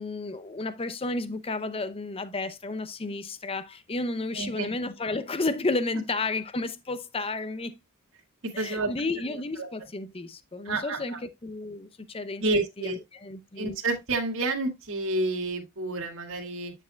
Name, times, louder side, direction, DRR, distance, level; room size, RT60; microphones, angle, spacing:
voice 1, 0.0-7.8 8.5-13.8, left 3 dB, 25° left, 0.6 m, -32 dB
voice 2, 4.3-4.7 8.4-8.9 9.6-9.7 10.6-11.2 12.4-13.0 13.6-16.7, right 2 dB, 60° right, 2.1 m, -29 dB
9.5 x 6.6 x 2.3 m
head